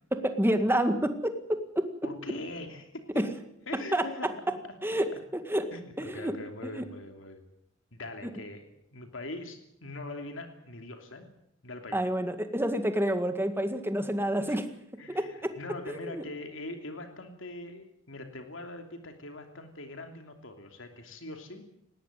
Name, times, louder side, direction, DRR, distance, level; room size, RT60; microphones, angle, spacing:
voice 1, 0.1-1.9 3.2-3.3 3.9-4.0 4.8-5.7 6.0-6.3 6.6-6.8 11.9-14.7 15.1-15.5 15.9-16.2, right 1 dB, 10° right, 8 dB, 2.0 m, -28 dB
voice 2, 2.0-3.2 3.7-4.4 5.7-7.4 7.9-11.3 11.6-12.1 14.5-14.6 15.0-21.7, left 2 dB, 70° left, 5 dB, 3.0 m, -42 dB
19.5 x 18.0 x 9.2 m, 0.75 s
head